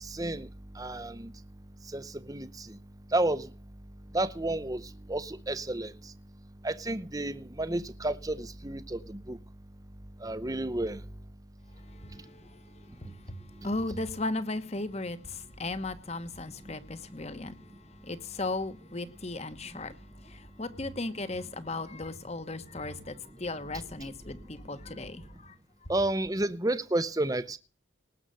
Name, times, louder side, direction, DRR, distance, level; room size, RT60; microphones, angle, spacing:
voice 1, 0.0-0.5 0.8-1.3 1.9-2.8 3.1-3.5 4.1-4.8 5.1-5.9 6.6-9.4 10.2-11.0 25.9-27.6, right 1 dB, 20° right, 0.7 m, -31 dB
voice 2, 13.6-17.5 18.0-19.9 20.2-25.5, left 2 dB, 35° left, 1.2 m, -36 dB
19.0 x 6.7 x 6.6 m
head